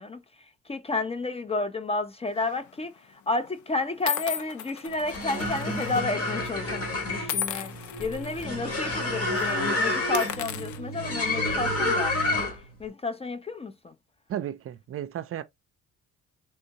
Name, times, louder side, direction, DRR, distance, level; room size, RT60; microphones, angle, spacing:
voice 1, 0.0-7.7 8.0-14.0, left 3 dB, 20° left, 0.4 m, -31 dB
sound 1, 2.4-2.7 3.4-3.5 4.1-6.0 6.3-6.5 7.3-8.5 8.9-9.0 9.3-9.5 10.0-11.6, left 8 dB, 75° left, 0.5 m, -35 dB
sound 2, 4.9-12.7, left 2 dB, 50° left, 1.4 m, -29 dB
sound 3, 5.4-12.4, right 2 dB, 90° left, 1.1 m, -39 dB
voice 2, 14.3-15.4, right 10 dB, 50° right, 0.4 m, -34 dB
3.7 x 2.6 x 2.7 m
cardioid pair, 90°, 30 cm